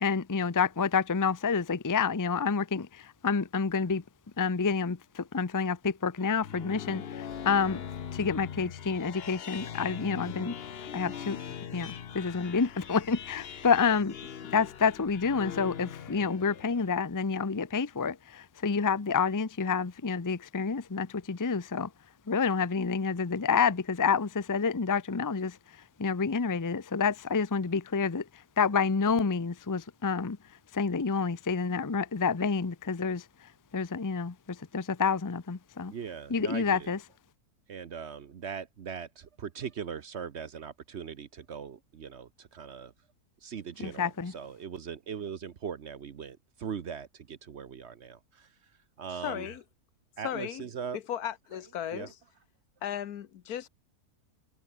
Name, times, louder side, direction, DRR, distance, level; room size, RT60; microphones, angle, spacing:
voice 1, 0.0-4.0 4.4-7.8 8.1-10.6 10.9-11.4 11.7-14.1 14.5-21.9 22.3-25.6 26.0-28.2 28.6-30.4 30.7-33.2 33.7-35.9 36.3-37.0 43.8-44.3, left 5 dB, 20° left, 0.5 m, -28 dB
sound 1, 6.2-17.0, left 8 dB, 45° left, 1.0 m, -41 dB
voice 2, 35.9-36.9 37.7-42.9 43.4-48.2 49.0-49.5 50.2-51.0 51.9-52.1, right 7 dB, 50° right, 1.0 m, -40 dB
voice 3, 49.1-49.6 50.2-50.7 50.9-52.2 52.8-53.7, left 10 dB, 75° left, 1.4 m, -36 dB
omnidirectional pair, 1.6 m